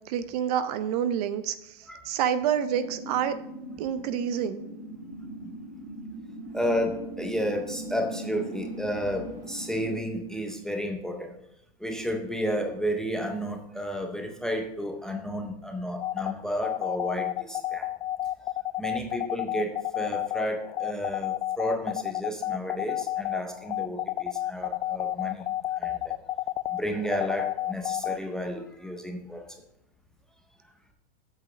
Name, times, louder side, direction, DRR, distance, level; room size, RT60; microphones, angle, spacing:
voice 1, 0.1-3.4 3.8-4.6, right 9 dB, 40° right, 12 dB, 0.6 m, -28 dB
sound 1, 2.6-9.9, right 1 dB, 65° right, 3.9 m, -40 dB
voice 2, 6.5-11.4 11.8-17.9 18.8-25.5 25.7-26.1 26.7-29.5, equal, ahead, 4 dB, 0.6 m, -32 dB
sound 2, 16.0-28.2, left 14 dB, 80° left, 0.5 m, -30 dB
8.2 x 5.4 x 6.2 m, 0.81 s
hypercardioid pair, 145°, 30 cm